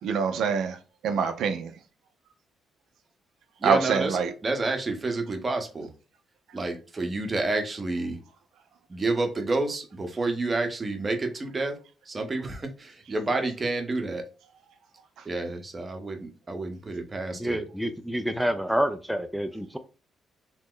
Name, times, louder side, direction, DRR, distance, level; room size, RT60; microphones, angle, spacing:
voice 1, 0.0-1.7 3.6-4.3 6.5-6.6 15.2-15.3, right 6 dB, 75° right, 0.4 m, -26 dB
voice 2, 3.6-4.1 4.4-5.9 6.5-8.2 8.9-11.8 12.1-14.2 15.3-17.6, right 2 dB, 30° right, 0.7 m, -29 dB
voice 3, 17.3-19.8, equal, ahead, 0.3 m, -28 dB
2.9 x 2.0 x 3.7 m
cardioid pair, 90°, 0 cm